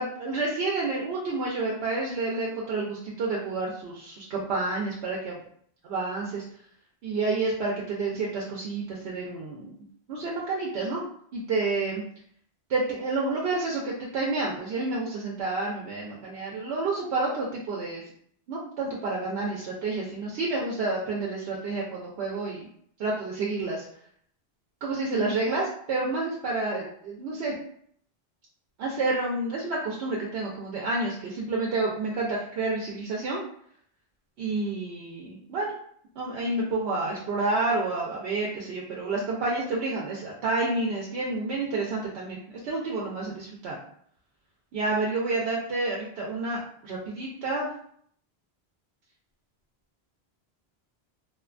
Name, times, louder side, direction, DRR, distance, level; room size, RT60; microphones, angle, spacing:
voice 1, 0.0-5.4 5.8-6.4 7.0-9.7 10.1-11.0 11.3-12.0 12.7-18.0 18.5-22.7 23.0-23.8 24.8-27.5 28.8-33.4 34.4-35.7 36.2-43.8 44.7-47.7, right 3 dB, 80° right, -3 dB, 0.8 m, -29 dB
2.7 x 2.2 x 2.4 m, 0.63 s
omnidirectional pair, 1.1 m